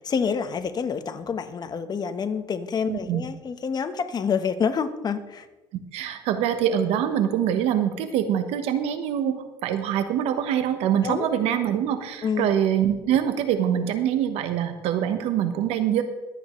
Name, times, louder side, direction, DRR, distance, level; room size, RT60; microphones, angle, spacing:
voice 1, 0.0-5.5 11.0-11.3 12.2-12.5, left 6 dB, 40° left, 10 dB, 1.2 m, -27 dB
voice 2, 2.9-3.2 5.7-16.0, right 9 dB, 85° right, 9 dB, 1.1 m, -24 dB
23.5 x 8.9 x 3.2 m, 1.1 s
cardioid pair, 95°, 10 cm